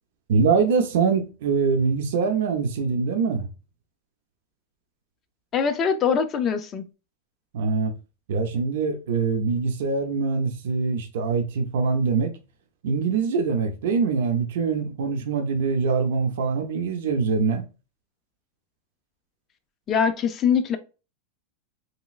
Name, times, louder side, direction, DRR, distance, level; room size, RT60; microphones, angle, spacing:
voice 1, 0.3-3.5 7.5-7.9 8.3-12.4 12.8-17.6, right 5 dB, 75° right, 0.5 m, -23 dB
voice 2, 5.5-6.8 19.9-20.8, left 7 dB, 25° left, 0.4 m, -22 dB
3.3 x 3.0 x 2.3 m
supercardioid pair, 165°, 0 cm